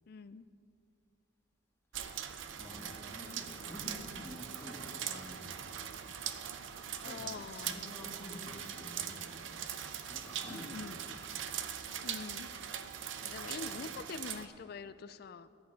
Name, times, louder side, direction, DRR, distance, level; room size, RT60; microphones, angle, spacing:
voice 1, 0.1-0.4 7.0-7.8 10.4-11.0 12.0-12.5 13.2-15.5, left 5 dB, 55° left, 14 dB, 0.4 m, -45 dB
sound 1, 1.9-14.5, right 9 dB, 80° right, 0.6 m, -41 dB
voice 2, 2.6-5.8 7.0-11.4 13.4-13.8, left 1 dB, 15° left, -2 dB, 1.6 m, -50 dB
13.5 x 8.3 x 4.5 m, 2.3 s
head